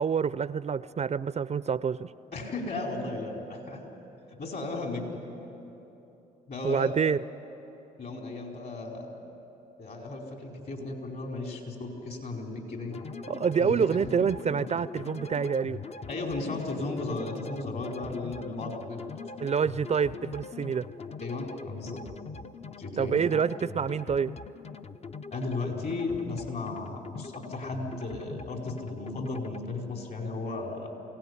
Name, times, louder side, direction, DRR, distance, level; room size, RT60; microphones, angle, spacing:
voice 1, 0.0-2.1 6.6-7.2 13.3-15.8 19.4-20.9 23.0-24.3, right 6 dB, 40° right, 17 dB, 0.5 m, -27 dB
voice 2, 2.3-3.8 4.3-5.2 6.5-6.9 8.0-9.1 9.8-13.0 13.6-13.8 14.2-14.3 16.1-19.1 21.2-22.0 22.8-23.5 25.3-30.9, left 3 dB, 55° left, 1 dB, 4.7 m, -35 dB
sound 1, 12.9-29.6, left 4 dB, 35° left, 0.7 m, -42 dB
23.0 x 17.5 x 9.8 m, 3.0 s
supercardioid pair, 60°, 18 cm